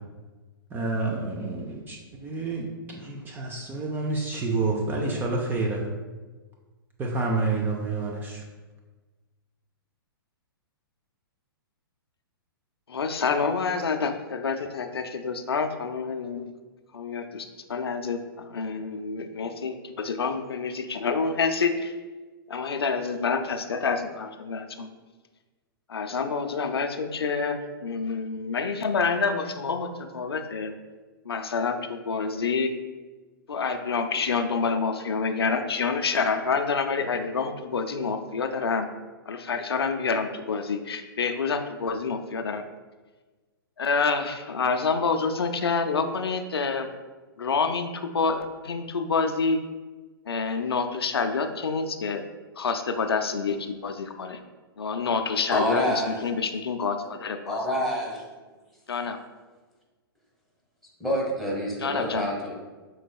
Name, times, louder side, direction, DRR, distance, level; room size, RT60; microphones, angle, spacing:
voice 1, 0.7-5.8 7.0-8.4, right 3 dB, 15° right, -1 dB, 0.5 m, -29 dB
voice 2, 12.9-16.5 16.9-21.9 22.5-24.9 25.9-30.8 31.3-32.8 33.5-38.9 39.3-42.6 43.8-46.9 47.4-49.6 50.3-52.2 52.6-54.4 54.8-55.9 56.2-57.6 58.9-59.2 61.8-62.3, left 5 dB, 90° left, 7 dB, 0.4 m, -27 dB
voice 3, 55.5-56.1 57.5-58.2 61.0-62.5, equal, ahead, -3 dB, 1.3 m, -27 dB
6.1 x 3.9 x 2.3 m, 1.3 s
hypercardioid pair, 125°, 13 cm